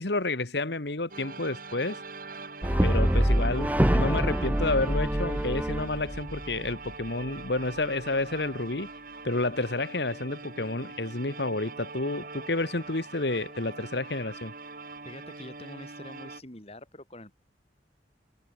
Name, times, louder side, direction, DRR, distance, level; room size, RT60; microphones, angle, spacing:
voice 1, 0.0-2.0 2.8-8.9 9.2-14.5, left 2 dB, 65° left, 1.7 m, -30 dB
sound 1, 1.1-16.4, right 3 dB, 50° right, 7.9 m, -43 dB
Brass instrument, 2.6-6.9, equal, 10° right, 0.7 m, -25 dB
voice 2, 15.0-17.3, left 1 dB, 35° left, 5.0 m, -45 dB
head